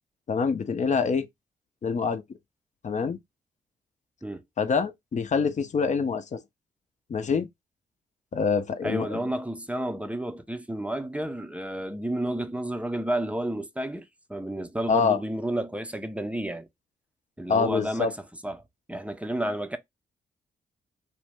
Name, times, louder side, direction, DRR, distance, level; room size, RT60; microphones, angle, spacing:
voice 1, 0.3-1.3 1.8-2.2 2.8-3.2 4.6-6.4 7.1-7.5 8.3-9.3 14.9-15.2 17.5-18.1, left 5 dB, 40° left, 0.6 m, -25 dB
voice 2, 8.8-16.7 17.4-18.6 18.9-19.8, right 1 dB, 5° right, 0.5 m, -31 dB
2.6 x 2.1 x 3.2 m
hypercardioid pair, 45°, 18 cm